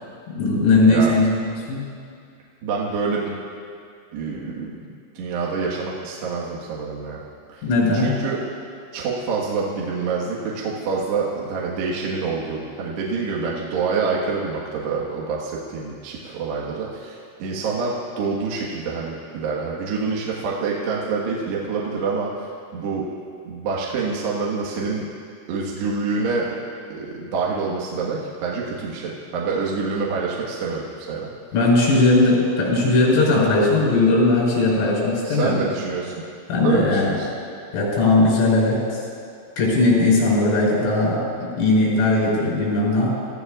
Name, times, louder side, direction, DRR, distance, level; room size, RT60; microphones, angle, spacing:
voice 1, 0.3-1.3 1.7-1.8 7.6-8.1 31.5-35.5 36.5-37.1 37.7-39.0 39.6-43.1, left 2 dB, 80° left, -5 dB, 7.1 m, -18 dB
voice 2, 0.9-1.2 2.6-3.4 4.1-4.9 5.1-7.2 7.5-7.7 7.9-8.4 8.9-22.5 22.7-23.0 23.4-25.0 25.5-26.5 26.9-31.3 35.2-36.1 36.6-37.3, right 4 dB, 65° right, -4 dB, 3.3 m, -26 dB
29.5 x 16.0 x 2.5 m, 2.3 s
omnidirectional pair, 5.9 m